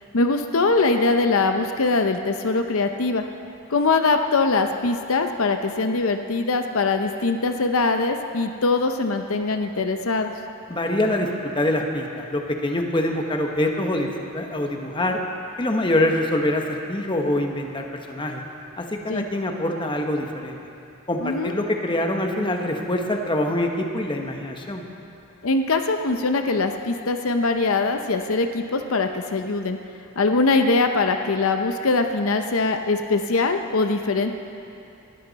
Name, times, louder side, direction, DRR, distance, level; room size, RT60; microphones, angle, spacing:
voice 1, 0.1-3.2 3.7-10.3 19.1-19.2 21.2-21.5 25.4-29.8 30.2-34.3, left 3 dB, 75° left, 6 dB, 0.7 m, -22 dB
voice 2, 10.7-15.2 15.6-18.4 18.8-20.6 21.1-24.8, left 1 dB, 25° left, 2 dB, 1.1 m, -25 dB
20.0 x 13.0 x 4.1 m, 2.6 s
head